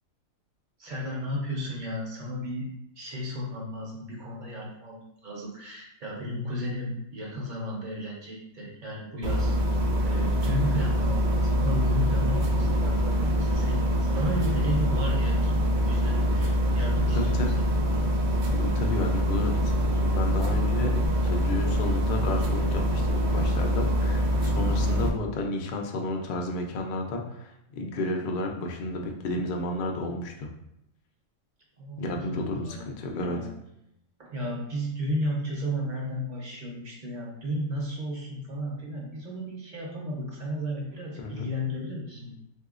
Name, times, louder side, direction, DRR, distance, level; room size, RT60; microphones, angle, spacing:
voice 1, 0.8-2.7 3.0-9.6 10.0-17.8 31.8-33.5 34.2-42.3, equal, 45° right, -3 dB, 0.7 m, -33 dB
sound 1, 9.2-25.1, equal, 85° right, 0.4 m, -24 dB
voice 2, 16.9-17.5 18.5-30.5 32.0-33.4 41.2-41.5, left 2 dB, 65° left, 2 dB, 0.5 m, -32 dB
3.7 x 2.7 x 2.4 m, 0.80 s
omnidirectional pair, 1.4 m